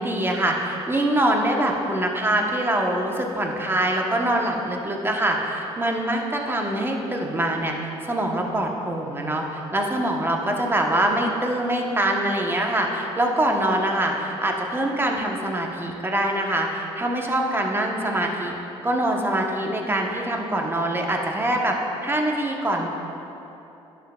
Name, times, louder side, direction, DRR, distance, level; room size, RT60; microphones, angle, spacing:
voice 1, 0.0-18.5 18.8-21.8 22.0-22.9, right 1 dB, 15° right, 1 dB, 1.1 m, -24 dB
11.5 x 5.8 x 2.4 m, 2.9 s
hypercardioid pair, 60°, 14 cm